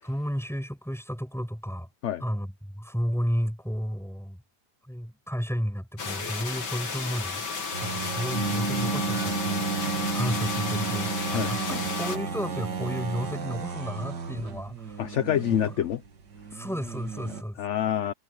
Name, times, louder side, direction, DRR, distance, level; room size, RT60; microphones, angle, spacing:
voice 1, 0.0-1.9 2.2-4.4 4.9-7.4 7.8-15.0 16.5-17.6, equal, ahead, 6.7 m, -32 dB
sound 1, 6.0-12.2, left 5 dB, 90° left, 3.0 m, -33 dB
sound 2, 7.7-17.4, right 5 dB, 80° right, 2.4 m, -35 dB
sound 3, 8.3-13.7, right 3 dB, 50° right, 1.3 m, -33 dB
voice 2, 11.3-11.8 15.0-16.0 17.6-18.1, left 10 dB, 55° left, 0.9 m, -27 dB
omnidirectional pair, 1.8 m